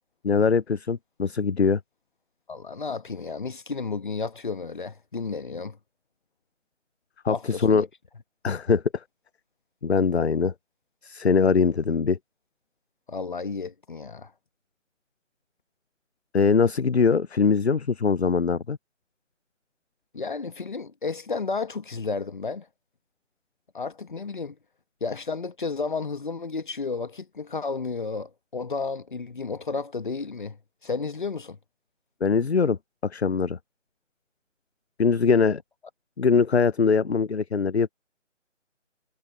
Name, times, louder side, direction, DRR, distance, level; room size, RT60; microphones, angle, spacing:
voice 1, 0.2-1.8 7.2-7.9 8.4-9.0 9.8-10.5 11.0-12.2 16.3-18.8 32.2-32.8 33.0-33.6 35.0-35.6 36.2-37.9, left 5 dB, 55° left, 0.7 m, -22 dB
voice 2, 2.5-5.8 7.3-7.9 13.1-14.3 20.1-22.7 23.7-24.6 25.0-30.6 30.8-31.6, left 4 dB, 40° left, 1.7 m, -32 dB
figure-of-eight pair, 160°, 38 cm